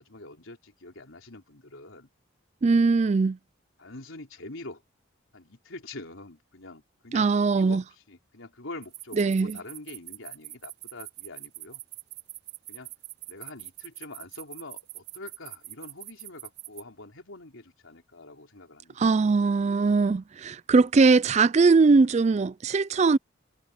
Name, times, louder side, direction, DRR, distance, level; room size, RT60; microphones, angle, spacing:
voice 1, 0.0-2.1 3.0-3.1 3.8-4.8 5.3-11.8 12.7-12.9 13.3-19.0, left 2 dB, 75° left, 3.9 m, -44 dB
voice 2, 2.6-3.4 7.1-7.8 9.2-9.6 19.0-23.2, right 4 dB, 35° right, 0.3 m, -21 dB
sound 1, 8.8-16.8, right 17 dB, 55° right, 7.5 m, -43 dB
head